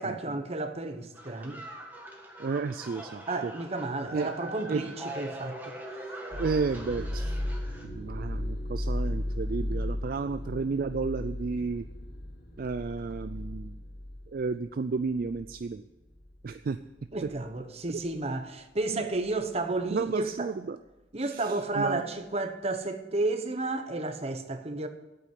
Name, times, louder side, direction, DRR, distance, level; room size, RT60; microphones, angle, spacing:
voice 1, 0.0-1.6 3.3-5.8 17.1-20.5 21.1-24.9, right 2 dB, 35° right, 1.0 m, -32 dB
sound 1, 1.1-7.9, right 1 dB, 10° right, 1.7 m, -42 dB
voice 2, 2.4-3.5 4.1-4.3 4.7-4.8 6.4-7.3 7.8-11.9 12.6-13.8 14.3-15.8 16.4-16.8 17.2-17.3 18.9-19.0 19.9-20.8 21.2-22.0, right 4 dB, 50° right, 0.4 m, -32 dB
sound 2, 6.3-15.7 16.1-16.5 17.3-17.5, left 1 dB, 55° left, 2.1 m, -35 dB
8.5 x 8.4 x 9.3 m
head